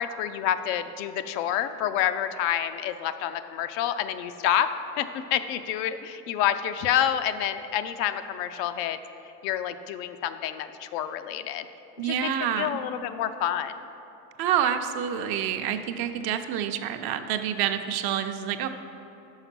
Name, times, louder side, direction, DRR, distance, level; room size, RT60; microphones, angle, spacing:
voice 1, 0.0-4.7 5.0-9.0 9.4-11.7 12.0-12.3 12.6-13.7, left 10 dB, 75° left, 10 dB, 0.6 m, -28 dB
voice 2, 12.0-12.8 14.4-18.7, right 9 dB, 50° right, 8 dB, 0.6 m, -27 dB
5.7 x 5.2 x 5.9 m, 3.0 s
supercardioid pair, 95°, 48 cm